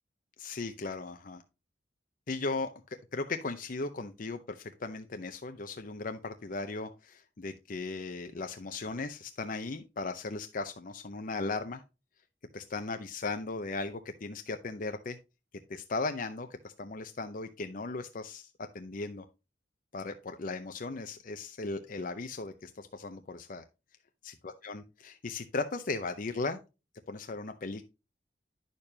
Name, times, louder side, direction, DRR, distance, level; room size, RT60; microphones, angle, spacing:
voice 1, 0.4-1.4 2.3-11.8 12.5-15.2 15.7-18.5 18.7-19.3 19.9-23.6 24.6-26.6 27.1-27.9, left 3 dB, 50° left, 8 dB, 0.6 m, -37 dB
10.5 x 6.7 x 2.8 m, 0.28 s
head